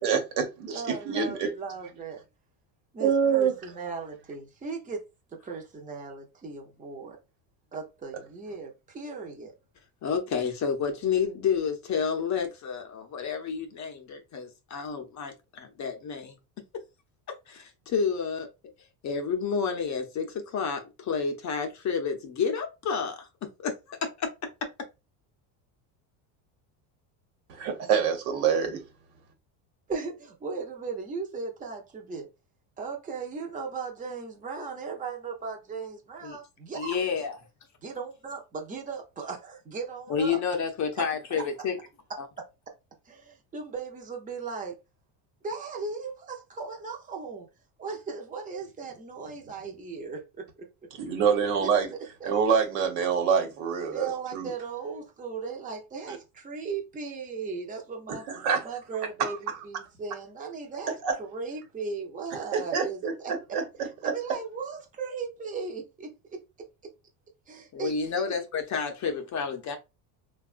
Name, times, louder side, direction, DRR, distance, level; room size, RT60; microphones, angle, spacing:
voice 1, 0.0-1.5 3.0-3.5 27.5-28.8 51.0-51.9 52.2-54.5 56.1-56.2 58.1-58.6 59.2-59.6 61.0-61.1 62.5-63.6 64.0-64.1, right 6 dB, 75° right, 1.1 m, -26 dB
voice 2, 0.7-2.2 2.9-5.0 5.3-7.2 7.7-9.5 29.9-32.3 32.8-37.0 37.8-40.4 43.1-44.8 45.4-47.5 47.8-50.5 51.6-51.7 52.2-52.4 53.9-58.2 58.6-66.4 67.5-68.3, right 4 dB, 15° right, 0.7 m, -37 dB
voice 3, 10.0-16.4 17.5-18.5 19.0-24.3 36.2-36.4 36.7-37.3 40.1-41.8 42.2-42.3 67.7-69.8, left 6 dB, 35° left, 0.6 m, -30 dB
3.4 x 2.3 x 2.4 m
cardioid pair, 125°, 50 cm